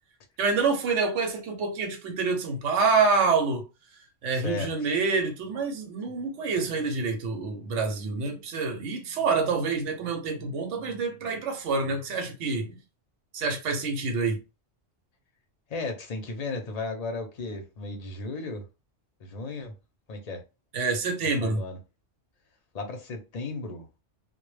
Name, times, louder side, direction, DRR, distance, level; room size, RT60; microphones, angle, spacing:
voice 1, 0.4-3.6 4.2-12.7 13.3-14.4 20.7-21.6, right 4 dB, 80° right, 1.0 m, -27 dB
voice 2, 4.3-4.9 15.7-18.7 19.2-19.7 20.1-20.4 21.4-21.8 22.7-23.9, left 3 dB, 45° left, 0.6 m, -35 dB
2.2 x 2.1 x 3.1 m
omnidirectional pair, 1.2 m